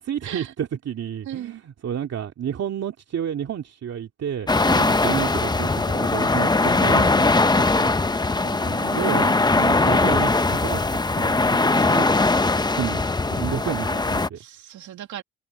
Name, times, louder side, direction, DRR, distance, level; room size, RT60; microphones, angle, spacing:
voice 1, 0.1-4.5 4.9-8.0 8.4-10.8 11.2-12.1 12.8-13.0 13.3-14.4, right 9 dB, 55° right, 2.7 m, -30 dB
voice 2, 1.2-1.6 4.7-5.0 8.6-9.2 11.7-12.1 14.3-15.2, right 12 dB, 75° right, 2.4 m, -37 dB
sound 1, 4.5-14.3, left 3 dB, 15° left, 0.9 m, -20 dB
cardioid pair, 90°, 30 cm